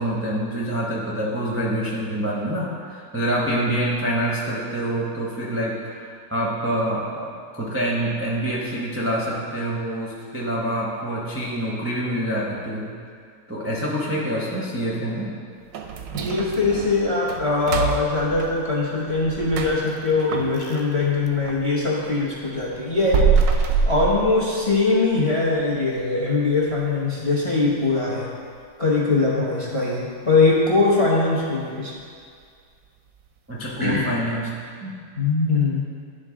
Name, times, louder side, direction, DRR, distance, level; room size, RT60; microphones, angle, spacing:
voice 1, 0.0-12.9 13.5-15.4 33.5-34.5 34.8-35.0, right 1 dB, 15° right, -6 dB, 0.4 m, -26 dB
sound 1, 15.7-21.7 22.1-24.9 25.3-25.4 25.8-26.0 26.5-26.8 27.1-27.2 27.8-27.9, right 5 dB, 70° right, 0.9 m, -26 dB
voice 2, 16.1-23.2 23.9-28.3 28.8-31.9 33.8-34.1 35.2-35.8, left 3 dB, 30° left, -4 dB, 0.6 m, -21 dB
10.5 x 3.8 x 3.7 m, 2.1 s
omnidirectional pair, 1.8 m